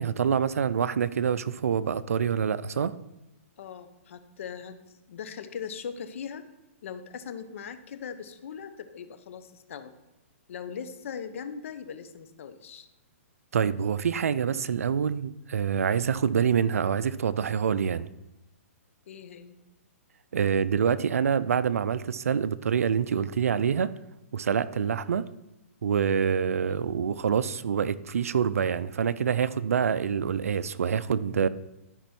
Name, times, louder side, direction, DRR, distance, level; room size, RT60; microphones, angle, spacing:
voice 1, 0.0-2.9 13.5-18.1 20.3-23.9 24.3-25.3 25.8-31.5, right 7 dB, 80° right, 16 dB, 0.5 m, -26 dB
voice 2, 3.6-4.8 5.1-6.4 6.8-9.9 10.5-12.9 19.1-19.6 26.6-26.9, left 7 dB, 65° left, 10 dB, 0.9 m, -40 dB
12.5 x 5.3 x 4.4 m, 0.92 s
hypercardioid pair, 140°, 8 cm